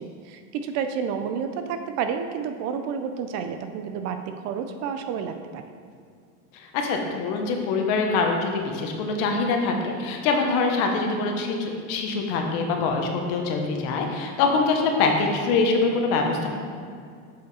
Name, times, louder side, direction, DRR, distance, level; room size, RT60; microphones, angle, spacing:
voice 1, 0.0-5.6, right 7 dB, 45° right, 8 dB, 0.5 m, -30 dB
voice 2, 6.5-16.5, left 4 dB, 55° left, 2 dB, 1.1 m, -24 dB
7.2 x 4.9 x 4.2 m, 2.2 s
supercardioid pair, 130°, 38 cm